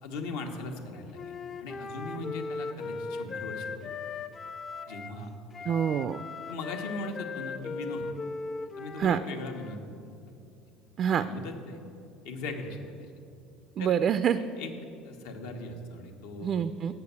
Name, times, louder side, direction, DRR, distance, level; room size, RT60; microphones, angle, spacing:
voice 1, 0.0-3.9 4.9-5.3 6.5-8.0 8.8-10.1 11.2-11.8 12.2-13.1 13.8-13.9 14.4-14.7 15.0-16.6, left 2 dB, 85° left, 3 dB, 1.2 m, -39 dB
Wind instrument woodwind instrument, 1.1-5.2 5.5-9.8, left 4 dB, 30° left, 0.4 m, -38 dB
voice 2, 5.7-6.2 9.0-9.2 11.0-11.3 13.8-14.4 16.4-16.9, right 8 dB, 40° right, 12 dB, 0.3 m, -26 dB
8.2 x 6.7 x 8.2 m, 2.5 s
supercardioid pair, 120°, 0 cm